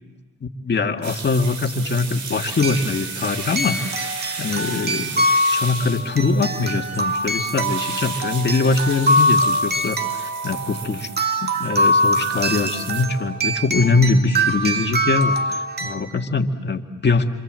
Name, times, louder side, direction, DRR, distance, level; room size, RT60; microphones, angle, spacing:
voice 1, 0.4-11.1 11.4-17.3, left 3 dB, 35° left, 4 dB, 2.2 m, -22 dB
sound 1, 1.0-13.1, right 4 dB, 70° right, 4.4 m, -34 dB
sound 2, 1.1-1.2 2.6-16.0, equal, 35° right, 2.3 m, -23 dB
27.0 x 26.5 x 7.8 m, 1.2 s
cardioid pair, 90°, 30 cm